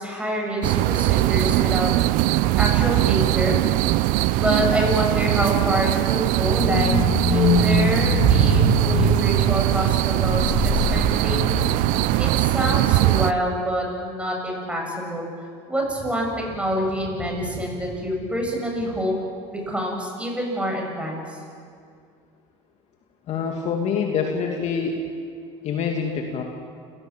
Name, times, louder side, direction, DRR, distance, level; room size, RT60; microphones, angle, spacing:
voice 1, 0.0-1.9 2.6-3.6 4.3-11.7 12.2-15.3 15.7-19.1 19.5-21.4, equal, 10° right, 0 dB, 7.9 m, -26 dB
sound 1, 0.6-13.3, right 17 dB, 70° right, 0.7 m, -21 dB
sound 2, 6.6-12.3 12.6-12.7, left 5 dB, 70° left, 3.4 m, -24 dB
voice 2, 23.3-25.1 25.6-26.4, left 6 dB, 50° left, 1 dB, 2.6 m, -25 dB
29.0 x 16.5 x 7.6 m, 2.2 s
supercardioid pair, 95°, 14 cm